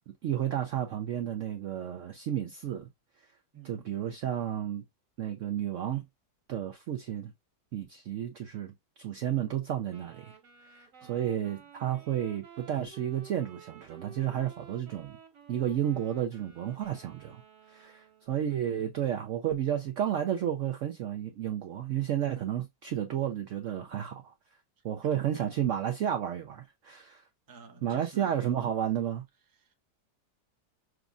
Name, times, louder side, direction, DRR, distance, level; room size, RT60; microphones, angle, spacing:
voice 1, 0.2-2.9 3.6-4.8 5.2-6.0 6.5-7.3 7.7-8.7 9.0-10.3 10.7-15.1 15.5-17.4 17.7-24.3 24.8-27.2 27.8-29.2, right 10 dB, 70° right, 0.7 m, -32 dB
voice 2, 3.5-3.9 11.0-11.5 18.5-18.9 25.3-25.5 27.5-28.4 29.6-29.7, right 5 dB, 20° right, 0.6 m, -51 dB
Wind instrument woodwind instrument, 9.9-18.4, right 7 dB, 50° right, 1.7 m, -53 dB
6.1 x 2.5 x 2.3 m
omnidirectional pair, 1.8 m